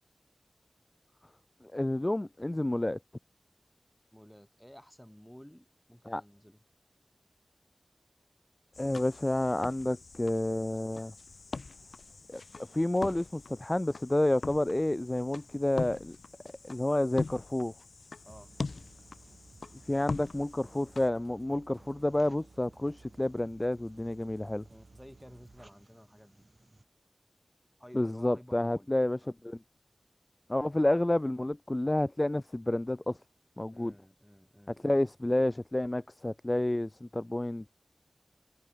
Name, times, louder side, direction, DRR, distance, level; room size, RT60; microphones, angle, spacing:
voice 1, 1.7-3.0 6.1-6.2 8.8-11.1 12.3-12.4 12.7-16.2 16.6-17.7 19.9-24.6 27.9-29.2 29.4-29.6 30.5-33.2 33.6-33.9 34.8-37.8, left 1 dB, 25° left, 0.3 m, -29 dB
voice 2, 4.1-6.6 18.2-18.5 24.7-26.4 27.8-29.3 33.7-35.0, equal, 5° left, 1.8 m, -54 dB
sound 1, 8.7-21.1, left 4 dB, 85° left, 0.6 m, -42 dB
sound 2, 18.3-26.8, right 2 dB, 30° right, 5.2 m, -63 dB
sound 3, 18.3-25.7, right 4 dB, 85° right, 7.3 m, -58 dB
wide cardioid pair, 75°, 0 cm